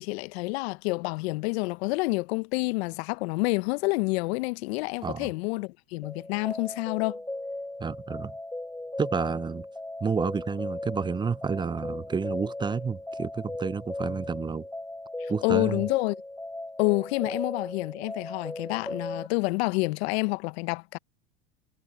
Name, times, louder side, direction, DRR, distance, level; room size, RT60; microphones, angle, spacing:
voice 1, 0.0-7.2 15.2-16.2 16.8-21.0, left 27 dB, 65° left, 0.9 m, -28 dB
sound 1, 6.0-19.3, left 1 dB, 5° left, 3.8 m, -37 dB
voice 2, 7.8-8.3 9.0-9.7 10.0-14.7 15.3-15.9, right 5 dB, 15° right, 0.6 m, -30 dB
hypercardioid pair, 95°, 34 cm